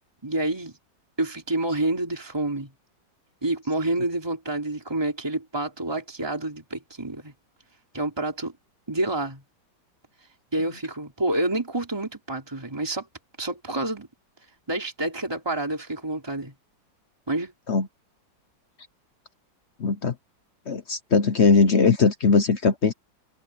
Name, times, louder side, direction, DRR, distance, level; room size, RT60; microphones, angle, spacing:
voice 1, 0.2-0.7 1.2-2.7 3.4-7.3 7.9-8.6 8.9-9.4 10.5-13.1 13.4-14.1 14.7-16.5 17.3-17.5, right 2 dB, 15° right, 3.3 m, -28 dB
voice 2, 19.8-20.1 20.7-22.9, left 4 dB, 45° left, 1.0 m, -20 dB
open air
omnidirectional pair, 2.0 m